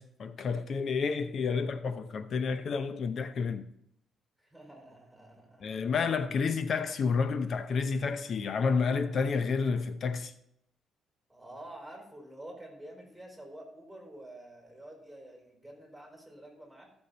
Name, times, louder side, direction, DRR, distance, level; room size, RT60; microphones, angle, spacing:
voice 1, 0.0-3.7 5.6-10.3, left 5 dB, 55° left, 0.6 m, -30 dB
voice 2, 4.4-6.2 11.3-16.9, right 1 dB, ahead, 4.9 m, -49 dB
14.0 x 7.0 x 4.0 m
cardioid pair, 90°, 0 cm